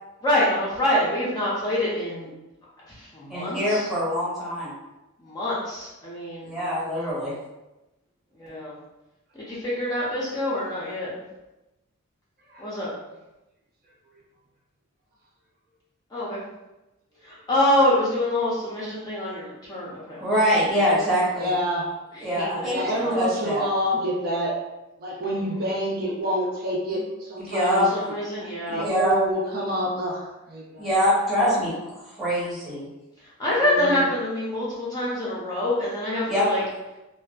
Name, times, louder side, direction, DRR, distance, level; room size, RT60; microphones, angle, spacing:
voice 1, 0.2-2.3 2.9-3.9 5.2-6.6 8.4-8.7 9.3-11.1 12.6-12.9 16.1-16.4 17.2-20.2 22.3-23.2 25.4-25.6 27.7-28.8 31.3-31.7 33.2-36.6, left 1 dB, 20° left, -8 dB, 0.5 m, -26 dB
voice 2, 3.3-4.7 6.4-7.3 20.1-21.5 22.2-23.7 27.4-27.9 28.7-29.1 30.8-32.9 36.3-36.5, equal, ahead, -9 dB, 0.8 m, -24 dB
voice 3, 21.4-21.9 22.6-24.5 25.0-27.9 28.6-30.9 33.6-34.1, equal, 45° right, -3 dB, 0.4 m, -27 dB
2.5 x 2.2 x 2.3 m, 0.99 s
head